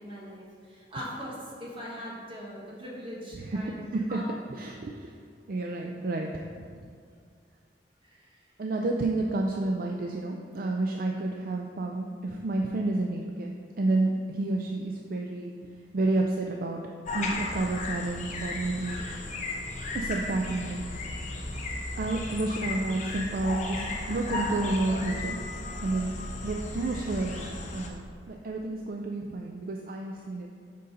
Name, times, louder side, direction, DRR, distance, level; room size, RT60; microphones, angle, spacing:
voice 1, 0.0-4.2 8.0-8.4, equal, 30° right, -5 dB, 1.5 m, -41 dB
voice 2, 3.3-4.2 4.5-5.1 5.5-6.9 8.6-16.8 17.1-19.0 19.9-20.9 22.0-25.4 25.8-26.1 26.4-30.5, right 2 dB, 55° right, 1 dB, 0.4 m, -30 dB
sound 1, 17.1-27.9, left 2 dB, 40° left, 0.8 m, -35 dB
6.6 x 5.3 x 3.9 m, 2.2 s
head